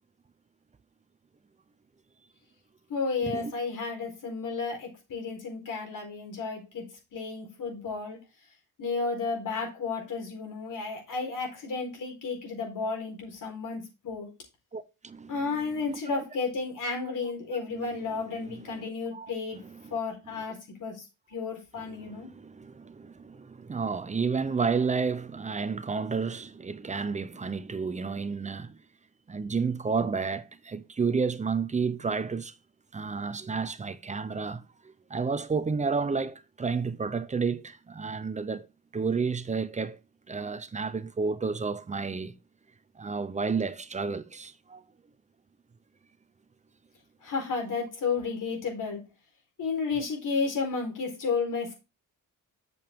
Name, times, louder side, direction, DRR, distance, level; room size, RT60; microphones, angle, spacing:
voice 1, 2.9-8.2 8.8-14.3 15.3-22.3 47.2-49.0 49.6-51.7, left 4 dB, 65° left, 4.2 m, -32 dB
voice 2, 14.7-15.3 16.1-16.2 18.2-18.3 18.7-19.3 19.6-20.0 21.8-28.8 29.3-32.6 32.9-38.7 38.9-40.0 40.3-42.3 43.0-44.8, right 5 dB, 20° right, 0.6 m, -31 dB
8.4 x 7.0 x 3.5 m
wide cardioid pair, 175°, 34 cm